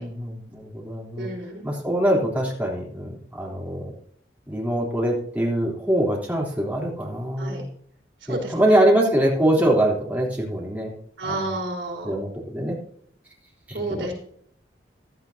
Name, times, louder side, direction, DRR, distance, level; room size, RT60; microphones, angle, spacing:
voice 1, 0.0-1.3 1.6-3.9 4.5-7.6 8.3-10.9 11.2-11.5 12.0-12.8 13.7-14.1, right 1 dB, 10° right, -4 dB, 3.5 m, -23 dB
voice 2, 1.2-1.7 7.4-7.6 8.2-8.8 9.6-9.7 11.2-12.2 13.7-14.1, right 2 dB, 85° right, -1 dB, 3.7 m, -31 dB
15.5 x 12.0 x 2.8 m, 0.63 s
head